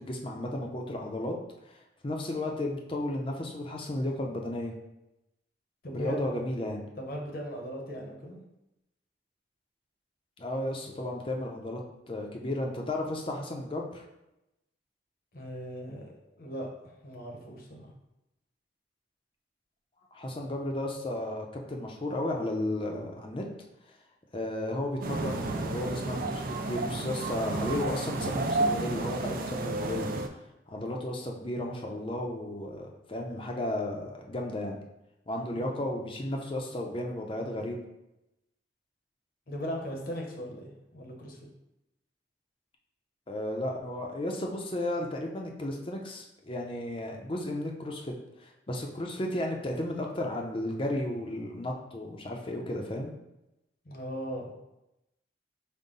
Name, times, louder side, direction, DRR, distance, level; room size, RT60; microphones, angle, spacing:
voice 1, 0.0-1.3 1.7-1.8 2.0-4.8 5.9-6.8 10.4-11.8 12.1-14.0 20.1-23.4 24.3-30.1 30.7-34.8 35.3-37.8 43.3-48.1 48.4-53.1, left 1 dB, 30° left, 1 dB, 0.6 m, -33 dB
voice 2, 5.8-6.3 7.0-8.4 15.3-16.7 17.0-17.9 35.5-35.8 39.5-41.4 53.8-54.5, equal, 55° left, 0 dB, 0.9 m, -38 dB
sound 1, 25.0-30.3, right 2 dB, 50° right, 0.4 m, -31 dB
5.4 x 2.2 x 3.8 m, 0.90 s
head